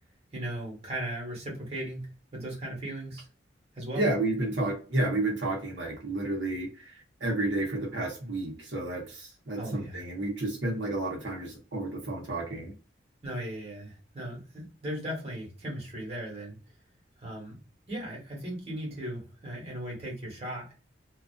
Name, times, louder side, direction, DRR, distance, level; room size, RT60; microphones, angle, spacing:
voice 1, 0.3-3.3 3.7-4.0 9.6-10.0 13.2-16.6 17.2-17.6 17.9-20.7, right 1 dB, 35° right, -3 dB, 1.1 m, -37 dB
voice 2, 3.9-6.9 7.2-12.7, right 2 dB, 80° right, -1 dB, 0.8 m, -31 dB
2.4 x 2.3 x 2.3 m, 0.35 s
head